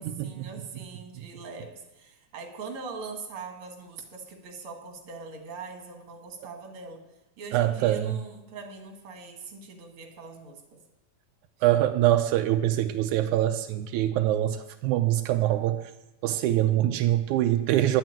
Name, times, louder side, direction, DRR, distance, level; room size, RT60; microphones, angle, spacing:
voice 1, 0.0-7.0 7.4-10.8, right 4 dB, 50° right, 3 dB, 2.8 m, -42 dB
voice 2, 7.5-8.2 11.6-15.9 16.2-18.0, right 13 dB, 85° right, 7 dB, 2.1 m, -24 dB
11.0 x 9.1 x 8.9 m, 0.96 s
omnidirectional pair, 3.3 m